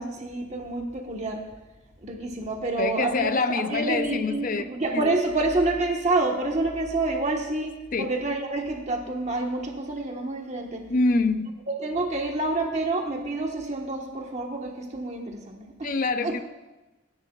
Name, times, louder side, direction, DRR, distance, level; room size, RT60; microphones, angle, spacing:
voice 1, 0.0-1.4 2.0-10.8 11.8-15.9 16.2-16.3, right 2 dB, 35° right, 1 dB, 1.3 m, -28 dB
voice 2, 2.7-5.1 7.9-8.1 10.9-11.6 15.8-16.4, left 3 dB, 45° left, 10 dB, 0.6 m, -26 dB
25.0 x 10.5 x 2.4 m, 1.1 s
head